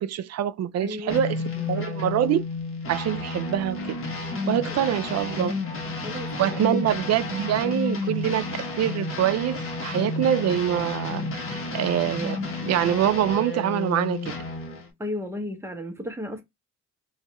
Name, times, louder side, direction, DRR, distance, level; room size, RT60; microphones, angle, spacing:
voice 1, 0.0-1.4 1.7-2.4 2.9-4.0 4.5-5.5 6.4-12.4 12.6-14.4, right 10 dB, 60° right, 0.4 m, -25 dB
voice 2, 0.8-1.2 1.5-1.9 4.6-4.9 6.0-6.8 15.0-16.4, left 1 dB, 10° right, 0.9 m, -34 dB
sound 1, 1.1-14.9, left 3 dB, 45° left, 1.2 m, -31 dB
2.7 x 2.4 x 4.2 m
cardioid pair, 90°, 30 cm